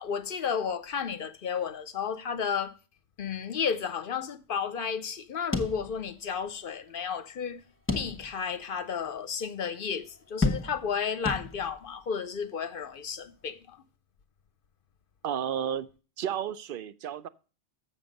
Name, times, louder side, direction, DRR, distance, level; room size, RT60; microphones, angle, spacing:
voice 1, 0.0-2.8 3.2-7.6 7.9-13.8, left 6 dB, 60° left, 0.8 m, -32 dB
sound 1, 5.5-6.4 6.7-6.8 7.9-8.5 9.0-9.1 10.4-11.0 11.3-11.9, left 3 dB, 10° left, 0.9 m, -31 dB
voice 2, 15.2-15.9 16.2-17.3, right 9 dB, 60° right, 0.7 m, -32 dB
7.3 x 6.9 x 5.2 m
omnidirectional pair, 1.1 m